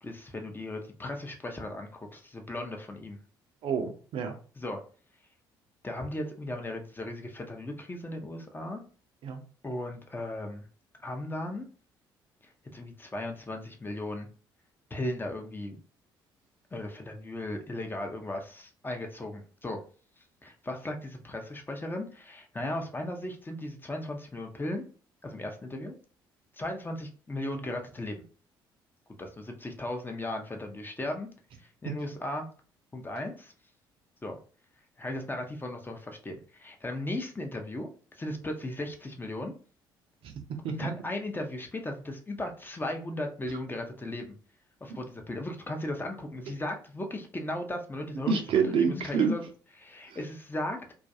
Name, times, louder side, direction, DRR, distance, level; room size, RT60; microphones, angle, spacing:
voice 1, 0.0-3.2 4.6-4.8 5.8-8.8 9.6-10.6 11.0-11.7 12.4-14.3 14.9-15.8 16.7-19.8 20.4-24.8 25.2-25.9 26.5-28.1 29.2-31.3 31.6-32.5 32.9-33.5 34.2-34.4 35.0-37.9 38.1-39.5 40.7-44.3 44.8-48.4 48.7-49.4 49.8-50.8, left 1 dB, 20° left, 3 dB, 0.6 m, -36 dB
voice 2, 3.6-4.3 9.2-9.4 31.8-31.9 40.2-40.3 40.6-40.9 48.3-49.3 50.1-50.2, right 6 dB, 55° right, 5 dB, 0.5 m, -28 dB
2.3 x 2.2 x 2.6 m, 0.40 s
figure-of-eight pair, 50°, 11 cm